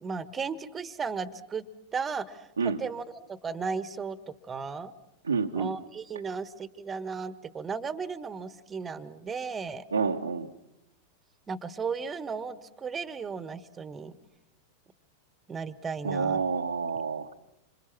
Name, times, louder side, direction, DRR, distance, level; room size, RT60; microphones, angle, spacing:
voice 1, 0.0-4.9 5.5-9.8 11.5-14.2 15.5-16.4, right 5 dB, 20° right, 16 dB, 1.3 m, -35 dB
voice 2, 5.3-5.7 9.9-10.5 16.0-17.3, right 5 dB, 75° right, 1 dB, 1.0 m, -28 dB
27.5 x 26.5 x 6.0 m, 0.83 s
figure-of-eight pair, 90°, 0 cm